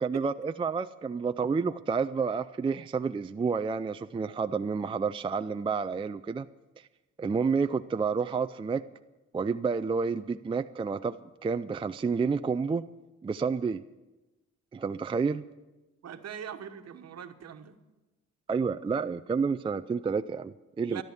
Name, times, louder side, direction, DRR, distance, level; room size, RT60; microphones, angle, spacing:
voice 1, 0.0-6.5 7.2-8.8 9.3-11.2 11.4-12.8 13.2-13.8 14.7-15.4 18.5-21.0, right 5 dB, 15° right, 10 dB, 0.4 m, -29 dB
voice 2, 16.0-17.8 20.9-21.0, right 8 dB, 55° right, 7 dB, 1.3 m, -41 dB
13.5 x 11.5 x 7.1 m, 1.1 s
cardioid pair, 90°, 30 cm